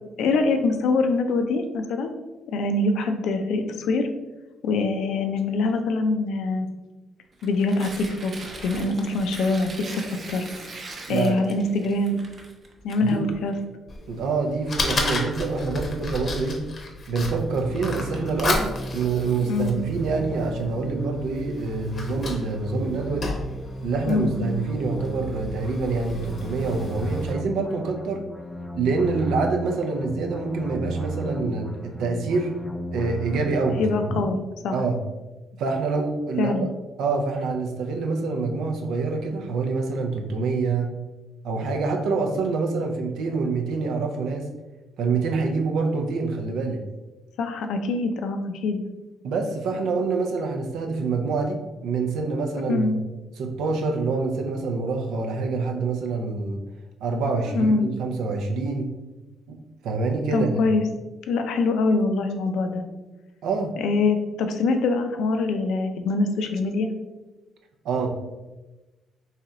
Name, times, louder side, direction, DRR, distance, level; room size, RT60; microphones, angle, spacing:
voice 1, 0.2-2.1 2.5-4.1 4.6-6.7 7.4-8.3 8.6-10.5 11.1-12.2 12.8-13.5 19.5-19.8 24.1-24.5 33.8-34.4 34.6-34.8 36.4-36.7 47.4-48.8 52.7-52.9 57.5-57.9 60.3-60.8 61.3-62.9 63.8-66.9, left 3 dB, 80° left, 6 dB, 0.4 m, -24 dB
Tearing, 7.3-13.6, right 3 dB, 45° right, 0.7 m, -41 dB
voice 2, 11.1-11.4 13.0-13.2 14.1-16.6 17.1-23.3 23.8-28.2 28.8-32.5 32.9-34.2 34.7-35.0 35.6-36.7 37.0-40.9 41.4-44.5 45.0-46.8 49.2-53.0 53.4-56.6 57.0-58.9 59.5-59.6 59.8-60.6 63.4-63.7 67.8-68.1, right 4 dB, 85° right, 3 dB, 0.5 m, -26 dB
Fire, 13.9-27.3, left 2 dB, 45° left, 0.7 m, -33 dB
sound 1, 17.2-34.3, right 1 dB, 10° left, 0.4 m, -35 dB
3.3 x 2.8 x 3.6 m, 1.1 s
cardioid pair, 90°, 0 cm